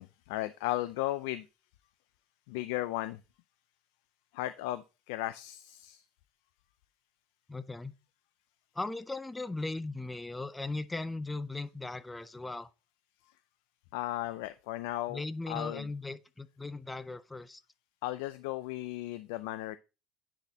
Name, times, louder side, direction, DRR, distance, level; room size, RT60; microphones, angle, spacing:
voice 1, 0.0-1.5 2.5-3.2 4.3-6.0 13.9-15.9 18.0-19.8, left 16 dB, 90° left, 0.4 m, -36 dB
voice 2, 7.5-7.9 8.8-12.7 15.1-17.6, left 2 dB, 10° left, 0.4 m, -38 dB
9.7 x 4.2 x 2.8 m
cardioid pair, 150°, 0 cm